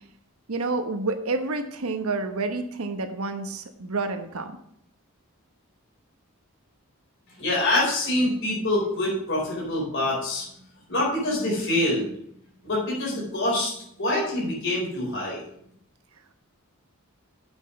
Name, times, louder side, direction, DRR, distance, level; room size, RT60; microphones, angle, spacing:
voice 1, 0.5-4.6, right 3 dB, 80° right, 6 dB, 1.1 m, -29 dB
voice 2, 7.4-10.4 10.9-12.1 12.6-13.7 14.0-15.4, left 1 dB, 55° left, -5 dB, 4.4 m, -25 dB
8.1 x 6.2 x 6.3 m, 0.70 s
head